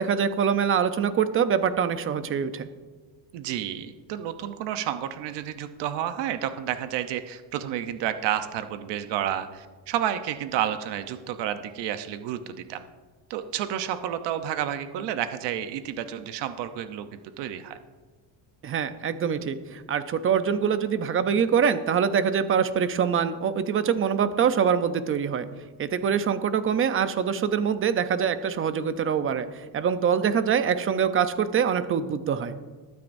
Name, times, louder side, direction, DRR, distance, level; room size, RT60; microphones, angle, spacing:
voice 1, 0.0-2.7 18.6-25.5 25.8-32.5, right 7 dB, 30° right, 11 dB, 0.6 m, -24 dB
voice 2, 3.3-12.4 12.7-12.8 13.3-17.1 17.4-17.8, right 10 dB, 65° right, 9 dB, 0.9 m, -30 dB
21.0 x 9.4 x 2.6 m, 1.3 s
cardioid pair, 145°, 45 cm